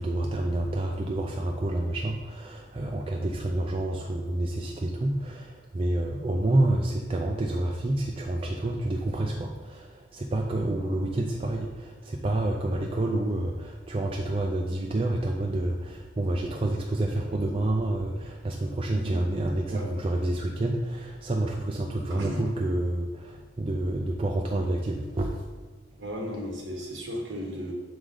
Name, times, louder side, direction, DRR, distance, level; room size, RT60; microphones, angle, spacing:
voice 1, 0.0-9.9 10.1-25.3, right 1 dB, 25° right, 1 dB, 0.4 m, -28 dB
voice 2, 18.9-19.3 19.7-19.9 22.1-22.4 26.0-27.7, equal, 65° right, -1 dB, 1.4 m, -35 dB
6.2 x 4.8 x 3.8 m, 1.3 s
head